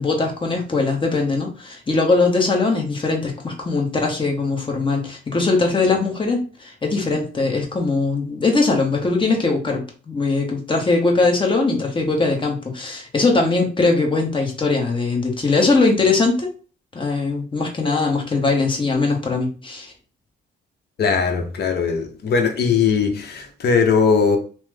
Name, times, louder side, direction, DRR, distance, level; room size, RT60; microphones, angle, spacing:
voice 1, 0.0-16.5 16.9-19.9, left 3 dB, 25° left, 0.9 m, -20 dB
voice 2, 21.0-24.4, left 5 dB, 55° left, 0.8 m, -19 dB
3.0 x 2.0 x 3.3 m
cardioid pair, 90°, 20 cm